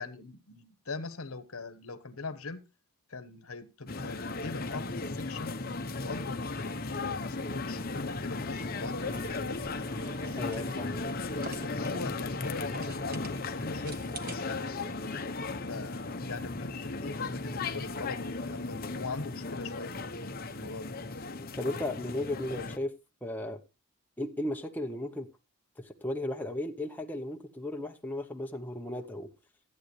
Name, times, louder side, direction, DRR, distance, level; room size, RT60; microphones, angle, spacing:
voice 1, 0.0-2.6 3.1-5.6 5.8-9.7 10.5-11.1 11.4-14.5 15.6-20.9, left 3 dB, 70° left, 1.2 m, -42 dB
sound 1, 3.9-22.8, left 3 dB, 40° left, 0.9 m, -36 dB
sound 2, 9.0-14.3, equal, 20° right, 3.2 m, -57 dB
sound 3, 9.1-14.4, right 2 dB, 40° right, 1.4 m, -49 dB
voice 2, 10.4-10.9 21.6-22.9 23.2-23.6 24.2-25.3 25.8-29.3, left 1 dB, 10° left, 0.9 m, -35 dB
14.5 x 9.0 x 3.2 m
head